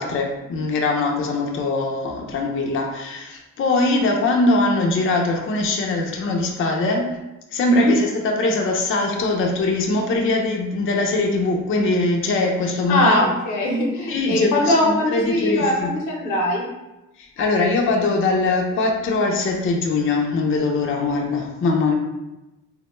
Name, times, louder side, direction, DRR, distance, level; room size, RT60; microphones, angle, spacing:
voice 1, 0.0-7.1 7.5-13.3 14.1-15.9 17.2-22.0, left 2 dB, 45° left, 0 dB, 0.5 m, -21 dB
voice 2, 12.9-16.6, left 1 dB, 85° left, -1 dB, 0.8 m, -21 dB
3.5 x 2.2 x 3.0 m, 0.99 s
cardioid pair, 90°, 30 cm